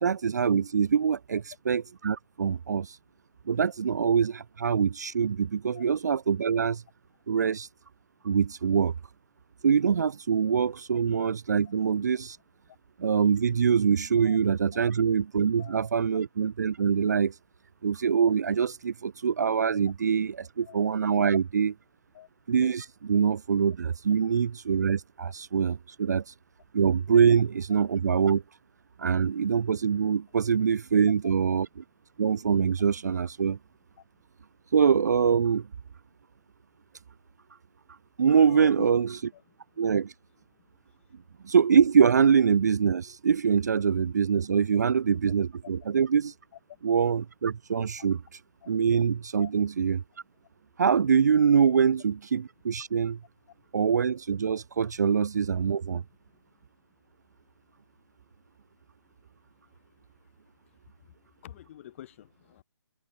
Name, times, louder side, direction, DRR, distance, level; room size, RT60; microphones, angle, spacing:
voice 1, 0.0-3.0 3.5-6.8 7.3-7.7 8.2-8.9 9.6-12.4 13.0-17.3 17.8-21.7 22.5-26.3 26.7-28.4 29.0-31.7 32.2-33.6 34.7-35.7 38.2-39.1 39.8-40.1 41.4-46.3 46.8-48.2 48.7-50.0 50.8-53.2 53.7-56.0, right 7 dB, 40° right, 0.5 m, -24 dB
voice 2, 15.6-16.0 20.6-20.8 22.1-22.3 30.6-30.7 31.2-31.6 34.0-34.1 38.5-38.9 39.3-39.4 44.7-44.8 45.6-45.7 46.5-46.8 48.0-48.1 48.6-48.7 49.4-49.5 51.7-51.8 54.9-55.2 56.3-56.4 61.4-62.6, left 12 dB, 30° left, 7.3 m, -46 dB
figure-of-eight pair, 140°, 13 cm